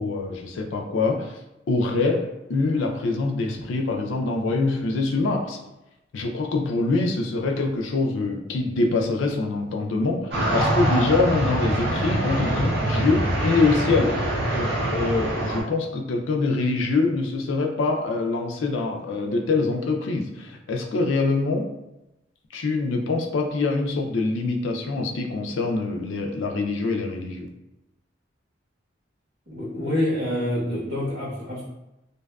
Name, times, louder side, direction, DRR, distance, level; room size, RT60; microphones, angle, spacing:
voice 1, 0.0-1.4 1.7-5.6 6.1-21.7 22.5-27.5, left 3 dB, 85° left, 3 dB, 0.4 m, -24 dB
sound 1, 10.3-15.6, right 1 dB, 55° right, 0.6 m, -24 dB
voice 2, 29.5-31.6, left 1 dB, 75° right, -8 dB, 1.2 m, -26 dB
2.6 x 2.3 x 2.2 m, 0.93 s
head